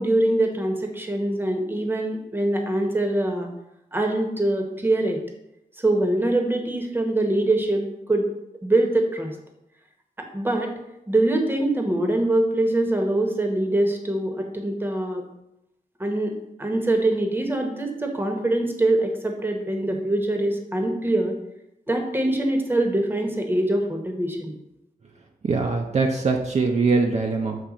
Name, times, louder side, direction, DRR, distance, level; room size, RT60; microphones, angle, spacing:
voice 1, 0.0-3.5 3.9-5.2 5.8-8.3 8.6-9.3 10.2-10.7 11.1-15.2 16.0-16.3 16.6-21.3 21.9-24.5, right 1 dB, 15° right, 3 dB, 0.9 m, -23 dB
voice 2, 25.4-27.6, right 4 dB, 50° right, 2 dB, 0.6 m, -22 dB
7.2 x 3.3 x 5.0 m, 0.86 s
wide cardioid pair, 145°, 15 cm